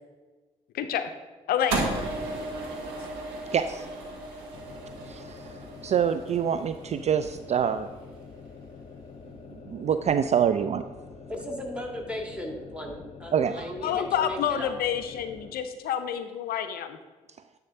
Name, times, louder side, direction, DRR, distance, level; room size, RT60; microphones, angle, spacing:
voice 1, 0.7-1.1 1.5-1.9 13.8-17.0, left 9 dB, 65° left, 9 dB, 0.5 m, -28 dB
sound 1, 1.7-8.0, right 2 dB, 75° right, 1.3 m, -35 dB
voice 2, 3.5-3.9 5.0-7.9 9.5-10.8 13.3-13.7, right 8 dB, 40° right, 10 dB, 0.4 m, -26 dB
sound 2, 4.5-15.6, left 4 dB, 40° left, 0.8 m, -46 dB
voice 3, 11.3-14.7, left 1 dB, 5° right, 1 dB, 2.0 m, -36 dB
9.7 x 3.6 x 5.4 m, 1.3 s
hypercardioid pair, 40°, 17 cm